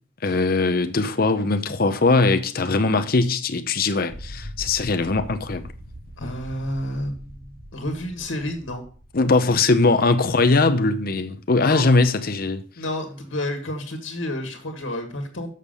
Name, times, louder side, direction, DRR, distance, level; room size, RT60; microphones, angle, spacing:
voice 1, 0.2-5.6 9.1-12.6, left 3 dB, 50° left, 0.7 m, -20 dB
sound 1, 4.1-9.3, equal, 40° right, 1.8 m, -41 dB
voice 2, 6.2-8.8 11.6-11.9 12.8-15.5, left 1 dB, 80° left, 1.8 m, -30 dB
7.2 x 6.6 x 5.2 m
head